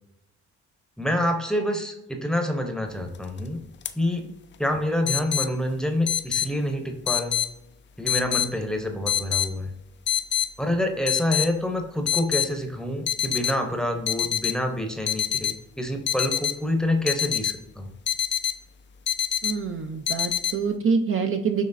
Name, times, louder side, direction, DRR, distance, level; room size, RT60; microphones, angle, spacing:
voice 1, 1.0-3.6 4.0-4.3 4.6-7.4 8.0-9.7 10.6-17.9, left 1 dB, ahead, 3 dB, 0.8 m, -27 dB
sound 1, 3.1-3.4 3.8-3.9 5.1-5.5 6.1-6.5 7.1-7.5 8.1-8.5 9.1-9.5 10.1-10.5 11.1-11.5 12.1-12.5 13.1-13.6 14.1-14.6 15.1-15.6 16.1-16.6 17.1-17.6 18.1-18.6 19.1-19.6 20.1-20.6, left 9 dB, 40° left, 0.4 m, -25 dB
voice 2, 19.4-21.6, right 5 dB, 45° right, 5 dB, 0.5 m, -26 dB
6.4 x 3.1 x 2.6 m, 0.91 s
cardioid pair, 90°, 30 cm